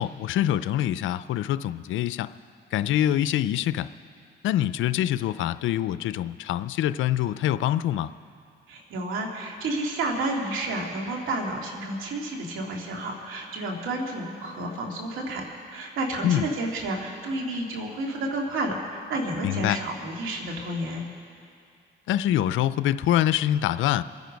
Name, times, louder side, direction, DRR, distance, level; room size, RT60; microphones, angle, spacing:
voice 1, 0.0-2.3 2.7-3.9 4.4-8.1 16.2-16.5 19.4-19.8 22.1-24.0, left 12 dB, 80° left, 14 dB, 0.5 m, -25 dB
voice 2, 8.7-21.0, right 2 dB, 90° right, 0 dB, 2.5 m, -31 dB
28.0 x 9.3 x 5.3 m, 2.3 s
cardioid pair, 90°, 20 cm